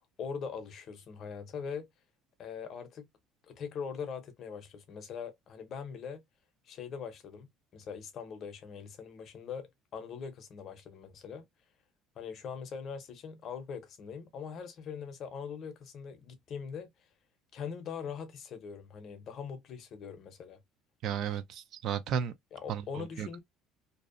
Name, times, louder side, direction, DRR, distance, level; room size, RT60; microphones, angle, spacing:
voice 1, 0.2-1.9 2.4-3.1 3.5-6.2 6.7-11.4 12.2-16.9 17.5-20.6 22.5-23.4, left 6 dB, 40° left, 0.6 m, -42 dB
voice 2, 21.0-22.3 22.7-23.4, right 8 dB, 50° right, 0.3 m, -34 dB
2.6 x 2.0 x 2.5 m
cardioid pair, 150°, 0 cm